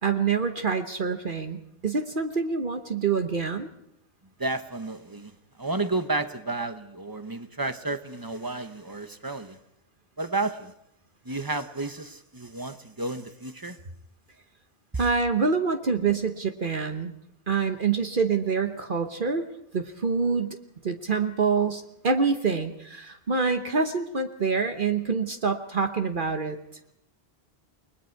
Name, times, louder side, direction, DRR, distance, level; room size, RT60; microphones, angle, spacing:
voice 1, 0.0-3.7 15.0-17.1 17.5-19.5 19.7-20.6 20.8-26.6, right 5 dB, 55° right, 6 dB, 1.2 m, -26 dB
voice 2, 4.4-5.3 5.6-9.6 10.2-10.7 11.2-13.8 14.9-15.0, right 2 dB, 20° right, 10 dB, 0.9 m, -31 dB
29.0 x 21.0 x 4.6 m, 0.76 s
omnidirectional pair, 1.1 m